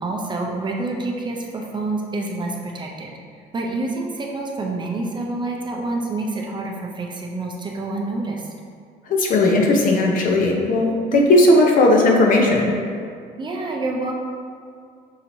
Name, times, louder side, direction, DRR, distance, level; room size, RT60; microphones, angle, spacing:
voice 1, 0.0-3.1 3.5-8.5 11.1-11.2 13.4-14.1, right 2 dB, 25° right, 0 dB, 0.5 m, -27 dB
voice 2, 9.1-12.7, left 2 dB, 55° left, 0 dB, 0.7 m, -16 dB
5.6 x 2.8 x 2.6 m, 2.2 s
cardioid pair, 110°, 17 cm